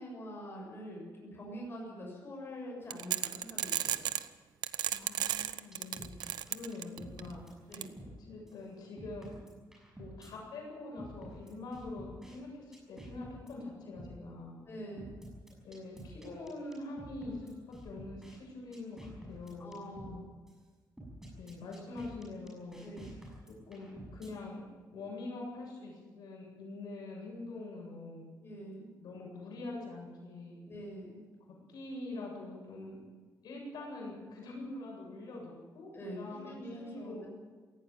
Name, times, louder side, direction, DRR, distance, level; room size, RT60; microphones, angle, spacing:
voice 1, 0.0-4.1 5.9-6.0 7.7-7.9 14.7-15.2 19.6-20.3 22.8-23.1 28.4-28.9 30.6-31.3 35.9-37.3, equal, 30° left, -2 dB, 7.4 m, -45 dB
sound 1, 2.9-4.3 4.6-7.2 7.7-7.8, right 11 dB, 85° right, 0.9 m, -33 dB
voice 2, 4.9-6.1 6.5-7.4 8.2-9.3 10.0-14.6 15.6-17.5 17.8-20.2 21.3-23.2 23.5-24.6 24.9-28.3 29.0-30.6 31.7-33.0 33.4-35.9 36.2-37.3, left 2 dB, 75° left, -1 dB, 7.8 m, -44 dB
sound 2, 5.7-8.2 8.5-8.6 9.0-10.3 11.0-12.4 12.7-13.5 14.0-14.2 15.0-18.4 18.7-20.2 20.5-20.6 21.0-24.3, right 1 dB, 5° right, 6.5 m, -49 dB
18.0 x 16.5 x 8.8 m, 1.4 s
cardioid pair, 150°, 7 cm